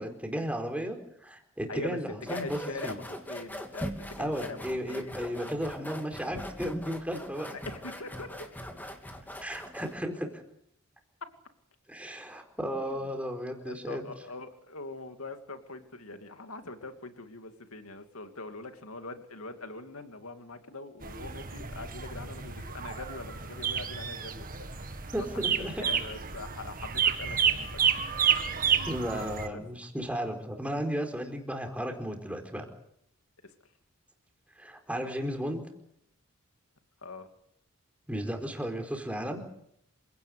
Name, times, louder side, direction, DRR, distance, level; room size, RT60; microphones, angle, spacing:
voice 1, 0.0-2.6 2.8-3.0 4.2-7.6 9.4-10.3 11.9-14.0 25.1-25.9 28.9-32.6 34.6-35.6 38.1-39.4, equal, 5° right, 4 dB, 4.4 m, -34 dB
voice 2, 1.7-3.0 3.3-5.1 7.7-8.5 12.6-13.1 13.6-25.3 25.5-27.8 28.7-29.6 37.0-37.3, left 3 dB, 85° left, 7 dB, 2.6 m, -43 dB
sound 1, 2.2-10.0, equal, 10° left, 3.1 m, -41 dB
sound 2, 21.0-29.5, right 7 dB, 45° right, 2.0 m, -30 dB
28.0 x 17.5 x 8.4 m, 0.74 s
head